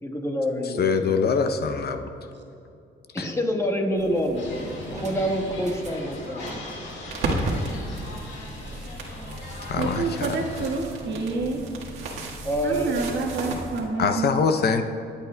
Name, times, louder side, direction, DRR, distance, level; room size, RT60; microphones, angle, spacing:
voice 1, 0.0-0.8 1.1-1.2 3.1-4.5 4.9-6.6 12.4-13.0, equal, 15° left, 2 dB, 1.3 m, -26 dB
voice 2, 0.6-2.1 3.1-3.3 9.6-10.7 14.0-14.8, left 5 dB, 55° left, 8 dB, 0.6 m, -24 dB
sound 1, 4.0-13.5, right 1 dB, 35° right, 1.3 m, -42 dB
sound 2, 4.3-10.8, left 2 dB, 70° left, 1.8 m, -39 dB
sound 3, 7.1-13.8, right 2 dB, 85° right, 1.5 m, -33 dB
voice 3, 9.8-11.6 12.6-14.6, right 3 dB, 65° right, 0 dB, 1.4 m, -28 dB
21.5 x 8.2 x 2.2 m, 2.6 s
cardioid pair, 90°, 20 cm